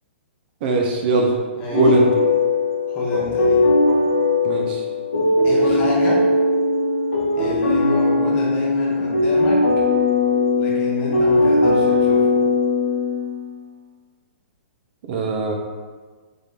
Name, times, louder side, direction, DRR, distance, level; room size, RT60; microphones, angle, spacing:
voice 1, 0.6-1.3 1.7-2.1 4.4-4.8 15.1-15.5, right 2 dB, 50° right, 2 dB, 0.5 m, -20 dB
voice 2, 1.5-1.9 2.9-3.7 5.4-6.3 7.4-9.7 10.6-12.4, left 1 dB, 30° left, -4 dB, 1.1 m, -28 dB
sound 1, 1.7-13.5, left 2 dB, 85° left, 1.0 m, -19 dB
3.4 x 2.5 x 3.6 m, 1.4 s
hypercardioid pair, 125°, 7 cm